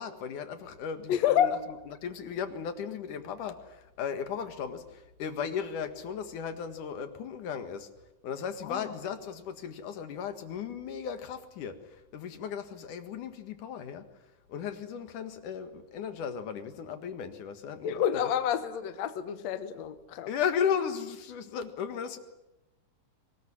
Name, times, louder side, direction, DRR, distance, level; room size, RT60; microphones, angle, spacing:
voice 1, 0.0-1.6 1.9-7.9 8.2-11.8 12.1-14.0 14.5-18.3 20.3-22.2, left 7 dB, 85° left, 9 dB, 3.3 m, -35 dB
voice 2, 1.1-1.6 8.6-8.9 17.8-20.3, left 9 dB, 65° left, 10 dB, 2.3 m, -28 dB
24.0 x 20.5 x 10.0 m, 0.96 s
omnidirectional pair, 3.5 m